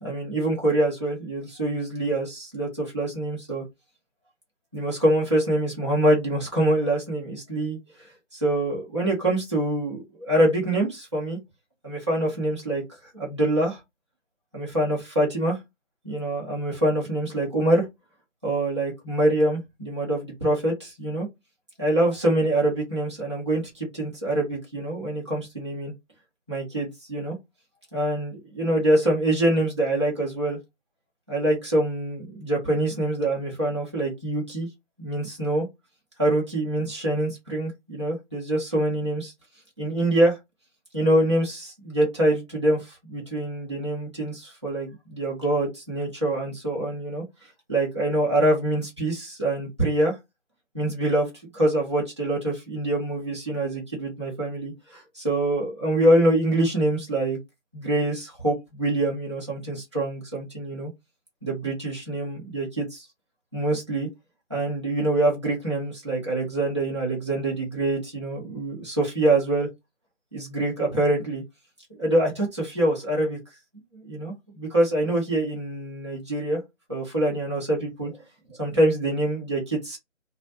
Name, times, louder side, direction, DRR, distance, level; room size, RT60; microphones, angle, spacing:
voice 1, 0.0-3.6 4.7-11.4 11.8-12.8 13.1-13.8 14.5-15.6 16.0-17.9 18.4-21.3 21.8-25.9 26.5-27.4 27.9-30.6 31.3-34.7 35.0-35.7 36.2-39.3 39.8-40.4 40.9-50.2 50.7-57.4 57.7-60.9 61.4-63.1 63.5-64.1 64.5-69.7 70.3-71.4 72.0-73.4 73.9-76.6 76.9-78.2 78.5-80.0, right 1 dB, 25° right, 0.8 m, -25 dB
2.3 x 2.1 x 2.8 m
figure-of-eight pair, 170°, 36 cm